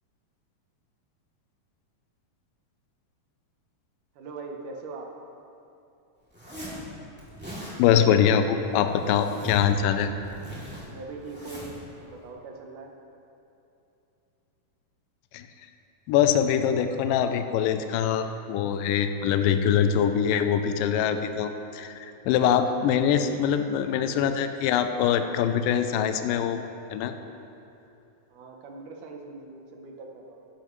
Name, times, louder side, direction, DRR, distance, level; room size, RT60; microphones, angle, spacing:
voice 1, 4.2-5.1 10.9-12.9 28.3-30.5, right 3 dB, 70° right, 1 dB, 2.2 m, -41 dB
Zipper (clothing), 6.3-6.8 7.2-7.8 8.6-9.7 10.0-11.8, equal, 5° right, 1.9 m, -40 dB
voice 2, 7.8-10.1 15.3-15.5 16.1-26.6 26.9-27.1, left 8 dB, 80° left, 8 dB, 2.2 m, -23 dB
14.5 x 11.0 x 3.1 m, 2.8 s
omnidirectional pair, 4.2 m